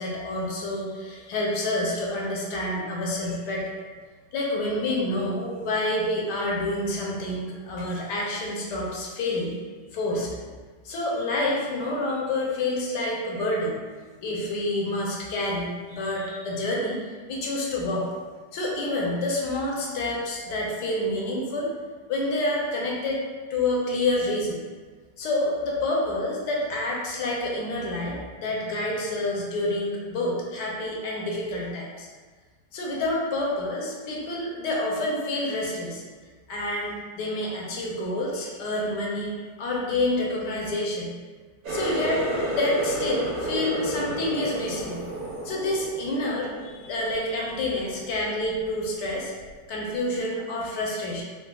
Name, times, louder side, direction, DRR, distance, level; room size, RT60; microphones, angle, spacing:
voice 1, 0.0-3.7 4.3-9.5 9.9-10.5 10.8-13.8 14.2-17.0 17.3-18.1 18.5-21.7 22.1-23.2 23.5-24.6 25.2-32.1 32.7-36.0 36.5-41.2 41.7-45.0 45.4-49.3 49.7-51.2, left 1 dB, 80° left, -3 dB, 1.2 m, -28 dB
Water tap faucet, 41.6-47.1 47.5-48.0 48.4-48.7 49.5-49.6, right 1 dB, 90° right, 1.6 m, -31 dB
3.9 x 2.3 x 2.3 m, 1.5 s
omnidirectional pair, 1.8 m